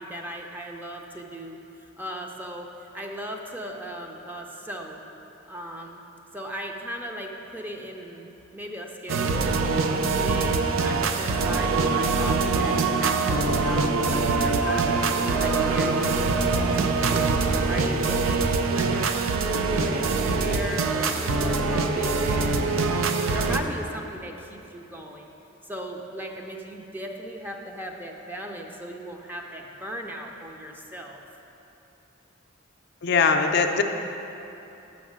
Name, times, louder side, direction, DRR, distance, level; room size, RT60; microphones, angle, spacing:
voice 1, 0.0-1.6 2.0-2.7 2.9-5.0 5.5-6.0 6.3-9.5 9.9-17.3 17.6-19.1 19.5-22.5 22.9-25.3 25.7-31.2, equal, 10° right, 1 dB, 0.5 m, -37 dB
sound 1, 9.1-23.6, right 4 dB, 85° right, 0.5 m, -24 dB
voice 2, 33.0-33.8, left 5 dB, 55° left, 5 dB, 0.4 m, -21 dB
6.4 x 6.3 x 6.1 m, 3.0 s
head